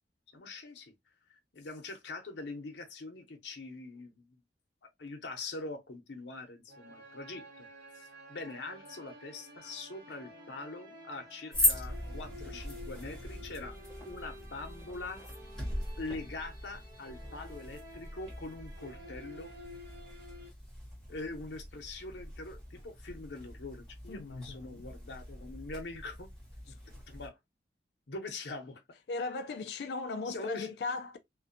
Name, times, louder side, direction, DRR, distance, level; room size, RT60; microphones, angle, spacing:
voice 1, 0.3-0.9 1.3-4.4 5.0-7.7 7.9-13.7 14.0-15.2 16.0-19.5 21.1-26.3 26.9-27.4 28.1-28.8 30.3-30.7, left 3 dB, 85° left, 0.7 m, -43 dB
sound 1, 6.7-20.5, left 1 dB, 55° right, 0.9 m, -52 dB
sound 2, 11.5-27.3, left 1 dB, 5° left, 1.1 m, -39 dB
voice 2, 24.1-24.9 29.1-31.2, left 3 dB, 65° left, 0.3 m, -37 dB
2.5 x 2.2 x 2.5 m
head